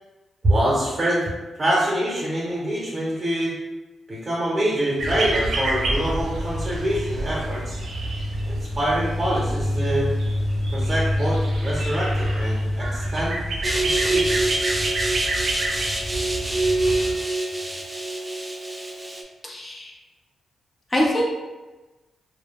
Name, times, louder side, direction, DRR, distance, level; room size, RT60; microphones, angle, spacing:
voice 1, 0.4-1.3 1.6-3.5 4.1-7.8 8.4-10.1 10.7-13.4 13.8-14.6, right 1 dB, 40° right, -6 dB, 0.7 m, -25 dB
sound 1, 5.0-17.1, equal, 80° right, 0.5 m, -26 dB
sound 2, 13.6-19.2, right 2 dB, 15° right, 0.4 m, -25 dB
voice 2, 19.4-19.9 20.9-21.3, equal, 30° left, -2 dB, 0.6 m, -23 dB
2.2 x 2.0 x 3.4 m, 1.2 s
cardioid pair, 70°, 0 cm